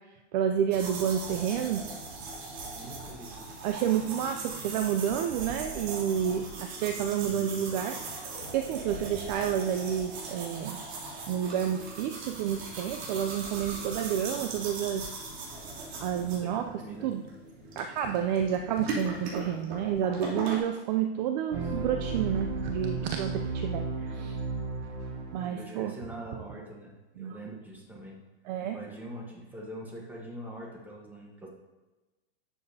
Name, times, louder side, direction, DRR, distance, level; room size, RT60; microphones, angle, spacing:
voice 1, 0.3-1.8 3.6-8.3 8.5-10.8 11.3-15.1 16.0-16.6 17.0-17.2 17.8-24.4 25.3-25.9 27.2-27.3 28.5-28.8, right 9 dB, 40° right, 6 dB, 0.4 m, -30 dB
sound 1, 0.7-20.6, right 3 dB, 60° right, 3.0 m, -39 dB
voice 2, 2.8-3.5 7.2-7.7 16.2-17.1 18.6-18.7 25.4-28.2 28.6-31.5, right 1 dB, 5° right, -1 dB, 1.2 m, -44 dB
sound 2, 21.5-25.4, right 4 dB, 75° right, 2.7 m, -34 dB
11.5 x 7.0 x 2.8 m, 1.1 s
supercardioid pair, 155°, 35 cm